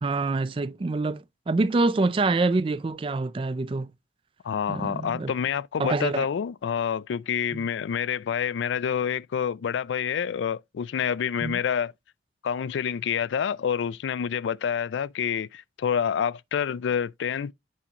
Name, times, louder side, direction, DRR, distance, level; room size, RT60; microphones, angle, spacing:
voice 1, 0.0-3.9 4.7-5.3 5.8-6.3 7.5-7.6 11.4-11.6, right 3 dB, 30° right, 0.4 m, -26 dB
voice 2, 4.4-11.9 12.4-17.5, left 7 dB, 85° left, 0.3 m, -28 dB
8.4 x 5.6 x 2.9 m
head